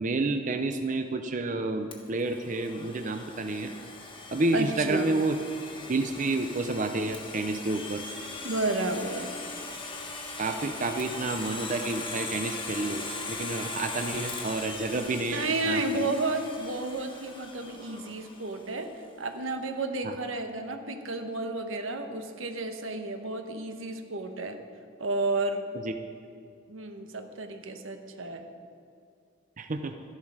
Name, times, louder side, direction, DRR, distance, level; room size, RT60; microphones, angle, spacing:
voice 1, 0.0-3.7 4.3-5.4 5.9-8.0 10.4-16.1 20.0-20.1 25.8-26.0 29.6-29.9, right 2 dB, 40° right, 7 dB, 0.6 m, -30 dB
Domestic sounds home sounds, 1.9-18.7, left 3 dB, 25° left, 1.4 m, -40 dB
voice 2, 4.5-5.1 8.4-9.3 15.3-18.9 19.2-24.6 25.0-25.6 26.7-28.5, right 2 dB, 85° right, 6 dB, 1.2 m, -32 dB
13.5 x 11.0 x 4.9 m, 2.3 s
head